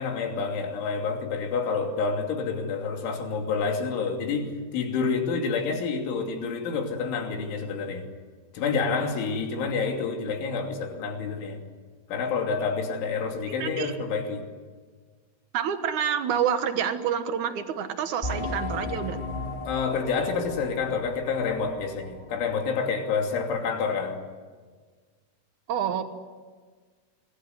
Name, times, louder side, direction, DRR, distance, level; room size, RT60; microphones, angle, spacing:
voice 1, 0.0-8.1 8.5-11.6 12.1-14.4 19.7-24.2, left 5 dB, 80° left, 5.3 m, -28 dB
voice 2, 13.5-13.9 15.5-19.2 25.7-26.0, right 8 dB, 85° right, 1.7 m, -28 dB
sound 1, 18.2-22.5 22.8-22.9 23.5-23.6, left 2 dB, 25° left, 1.0 m, -36 dB
26.0 x 20.5 x 9.6 m
omnidirectional pair, 5.4 m